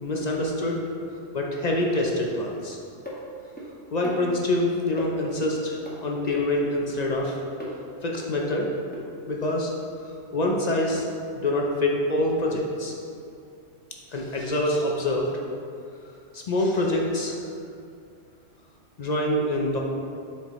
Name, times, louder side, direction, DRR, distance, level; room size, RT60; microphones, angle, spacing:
voice 1, 0.0-0.8 1.3-2.8 3.9-7.3 8.0-8.7 9.3-9.7 10.3-11.0 11.4-12.9 14.1-15.3 16.3-17.4 19.0-19.8, left 1 dB, 50° left, -1 dB, 0.5 m, -25 dB
sound 1, 3.1-3.2 3.6-3.7 4.0-4.6 5.0-5.1 5.4-5.5 5.9-6.0 6.4-6.5 7.6-7.7 8.9-9.0, equal, 10° left, 0.9 m, -36 dB
7.5 x 4.4 x 3.0 m, 2.4 s
omnidirectional pair, 1.2 m